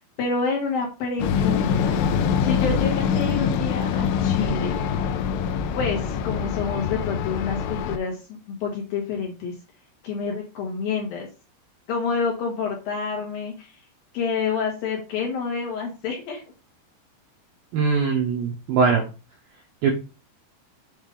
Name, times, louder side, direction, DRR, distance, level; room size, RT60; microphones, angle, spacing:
voice 1, 0.2-2.0 2.4-5.0 5.8-9.5 10.0-11.3 11.9-13.8 14.1-16.4, left 5 dB, 65° left, 0 dB, 2.4 m, -28 dB
sound 1, 1.2-8.0, left 7 dB, 85° left, 2.4 m, -24 dB
voice 2, 17.7-19.0 19.8-19.9, right 5 dB, 75° right, 1 dB, 2.2 m, -21 dB
8.0 x 3.6 x 5.1 m, 0.30 s
omnidirectional pair, 5.7 m